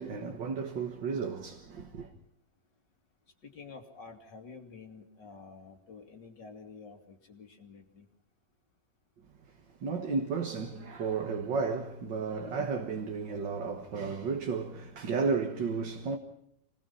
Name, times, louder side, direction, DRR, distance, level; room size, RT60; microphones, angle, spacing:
voice 1, 0.0-2.1 9.8-16.2, right 5 dB, 75° right, 2.3 m, -33 dB
voice 2, 3.4-8.1, left 4 dB, 70° left, 3.2 m, -49 dB
27.0 x 19.5 x 5.7 m
omnidirectional pair, 2.0 m